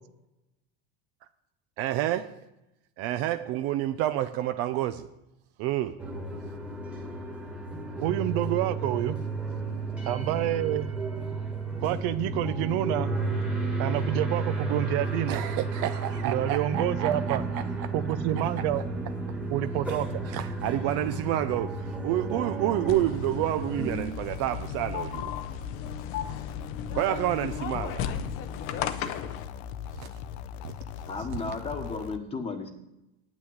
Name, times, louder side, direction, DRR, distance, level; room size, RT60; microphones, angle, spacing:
voice 1, 1.8-2.4 3.0-5.1 5.6-6.0 15.3-17.9 18.4-18.7 20.2-25.3 26.9-28.1 30.0-30.1, right 13 dB, 45° right, 9 dB, 0.6 m, -29 dB
sound 1, 6.0-24.0, right 3 dB, 5° right, 1.5 m, -32 dB
voice 2, 8.0-9.2 10.1-10.9 11.8-13.1 13.8-15.4 16.2-17.4 17.9-18.8 19.5-20.2, right 13 dB, 65° right, 12 dB, 0.9 m, -28 dB
sound 2, 22.9-29.4, left 8 dB, 40° left, 0.8 m, -35 dB
sound 3, 23.9-32.2, left 8 dB, 75° left, 0.8 m, -40 dB
voice 3, 31.1-32.7, left 4 dB, 20° left, 6 dB, 1.2 m, -34 dB
9.7 x 6.1 x 8.7 m, 0.92 s
cardioid pair, 170°, 33 cm